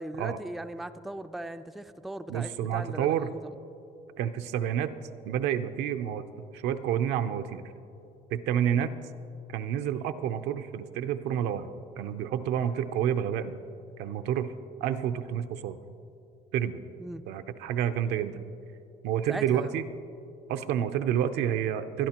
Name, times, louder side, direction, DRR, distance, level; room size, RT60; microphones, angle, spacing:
voice 1, 0.0-3.5 17.0-17.2 19.3-19.7, right 1 dB, ahead, 9 dB, 0.3 m, -38 dB
voice 2, 2.3-3.3 4.2-4.9 5.3-6.2 6.5-7.6 8.3-8.9 9.5-11.7 12.0-13.6 14.0-14.5 14.8-15.8 16.5-16.8 17.3-18.4 19.0-19.8 20.5-22.1, right 9 dB, 85° right, 9 dB, 0.6 m, -29 dB
22.5 x 10.5 x 2.9 m, 2.7 s
cardioid pair, 110°, 17 cm